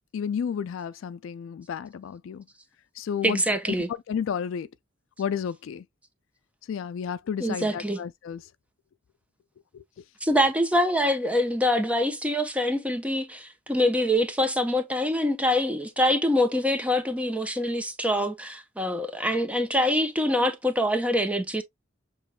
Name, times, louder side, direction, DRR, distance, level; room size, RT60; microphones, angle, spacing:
voice 1, 0.1-2.5 3.0-3.4 3.7-3.8 4.1-4.7 5.2-5.8 6.7-8.4 9.7-9.8, left 7 dB, 70° left, 0.3 m, -31 dB
voice 2, 3.2-3.9 7.4-8.0 10.2-21.6, left 1 dB, 5° right, 0.7 m, -25 dB
6.8 x 3.0 x 2.2 m
head